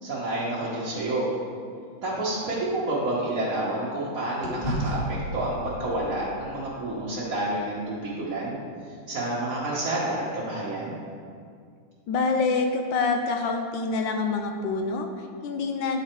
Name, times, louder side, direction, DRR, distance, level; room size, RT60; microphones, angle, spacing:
voice 1, 0.0-1.3 2.0-8.6 9.1-11.0, right 1 dB, 50° right, -8 dB, 1.3 m, -29 dB
sound 1, 1.7-4.0 4.4-8.7, right 1 dB, 25° left, 1.8 m, -36 dB
voice 2, 12.1-16.0, left 4 dB, 75° left, 4 dB, 1.1 m, -26 dB
9.8 x 3.9 x 4.4 m, 2.2 s
omnidirectional pair, 2.3 m